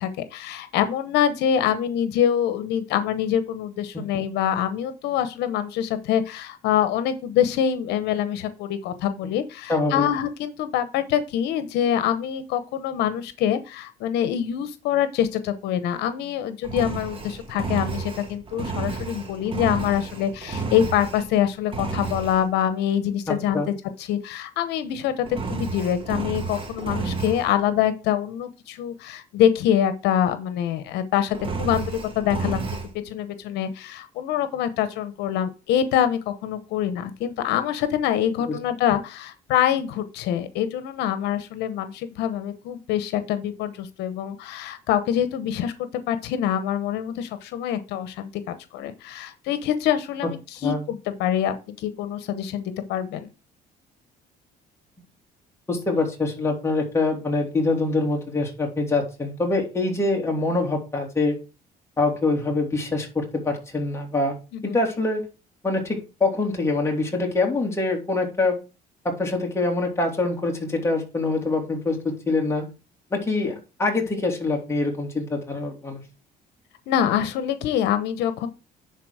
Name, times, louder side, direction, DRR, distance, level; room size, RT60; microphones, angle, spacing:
voice 1, 0.0-23.6 24.0-32.7 33.0-53.3 64.5-64.8 76.9-78.5, left 10 dB, 85° left, 11 dB, 1.0 m, -25 dB
voice 2, 9.7-10.0 23.3-23.7 38.5-38.6 50.6-50.8 55.7-61.4 62.0-64.3 64.6-65.2 65.6-68.6 69.0-72.7 73.1-76.0, left 3 dB, 15° left, 0 dB, 3.0 m, -24 dB
Engine, 16.6-21.4 21.7-22.4 25.3-27.5 31.3-32.9, right 4 dB, 30° right, 1.9 m, -31 dB
10.5 x 4.1 x 4.9 m, 0.31 s
cardioid pair, 110°, 17 cm